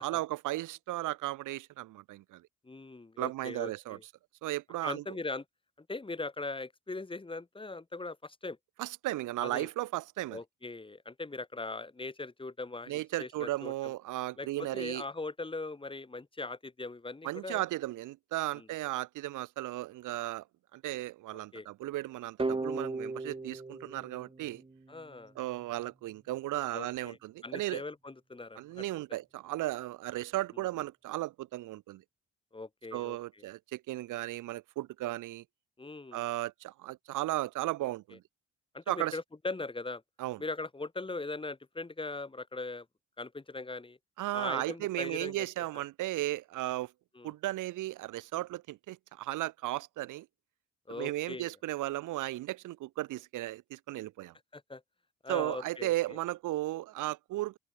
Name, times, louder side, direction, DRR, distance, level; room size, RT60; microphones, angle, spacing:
voice 1, 0.0-2.4 3.2-4.0 4.4-5.0 8.8-10.4 12.9-15.0 17.2-20.4 20.7-24.6 25.4-27.8 28.6-32.0 32.9-35.4 36.1-38.2 38.9-39.2 40.2-40.4 44.2-46.9 47.2-50.3 50.9-54.3 55.3-57.6, right 16 dB, 90° right, 2.0 m, -35 dB
voice 2, 2.6-4.0 4.8-5.4 5.8-8.6 9.4-9.7 10.3-13.9 14.4-17.6 18.6-18.7 21.5-21.7 24.9-25.3 26.7-27.2 27.4-28.8 32.5-33.5 35.8-36.2 38.7-40.0 40.4-42.9 43.2-44.0 44.3-45.5 45.7-45.8 47.2-47.3 50.9-51.5 54.5-54.8 55.2-56.2, left 3 dB, 15° left, 2.2 m, -40 dB
sound 1, 22.4-25.2, right 3 dB, 20° right, 2.4 m, -36 dB
cardioid pair, 90°, 30 cm